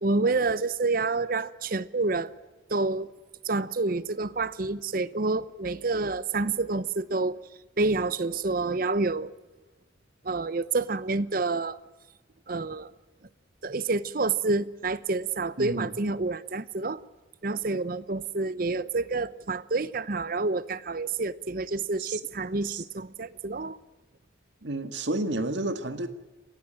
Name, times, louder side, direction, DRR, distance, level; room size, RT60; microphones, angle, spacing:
voice 1, 0.0-2.3 2.7-3.1 3.4-7.4 7.8-9.3 10.2-11.8 12.5-12.9 13.6-17.0 17.4-23.8, right 3 dB, 45° right, 0.7 m, -28 dB
voice 2, 15.6-15.9 22.0-22.2 22.7-22.8 24.6-26.1, right 2 dB, 65° right, 1.8 m, -30 dB
27.5 x 15.5 x 8.8 m
head